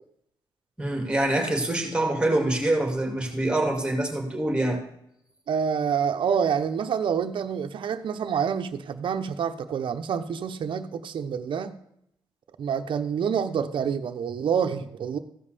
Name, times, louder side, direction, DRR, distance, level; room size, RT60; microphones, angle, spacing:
voice 1, 0.8-4.8, right 1 dB, 10° right, 3 dB, 2.5 m, -25 dB
voice 2, 5.5-11.8 12.6-15.2, right 7 dB, 65° right, 6 dB, 0.9 m, -27 dB
14.5 x 5.5 x 6.8 m, 0.75 s
cardioid pair, 115°, 9 cm